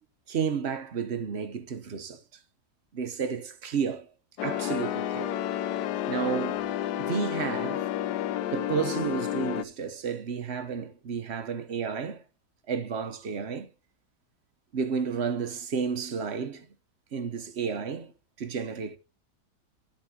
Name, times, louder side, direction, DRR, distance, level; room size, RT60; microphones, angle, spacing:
voice 1, 0.3-2.2 2.9-4.1 4.4-5.4 6.1-6.7 7.0-7.8 8.5-12.2 12.7-13.7 14.7-16.7 17.1-18.1 18.4-19.0, right 6 dB, 45° right, 1.0 m, -31 dB
sound 1, 4.4-9.6, left 11 dB, 80° left, 1.2 m, -31 dB
12.0 x 8.6 x 2.8 m
omnidirectional pair, 1.8 m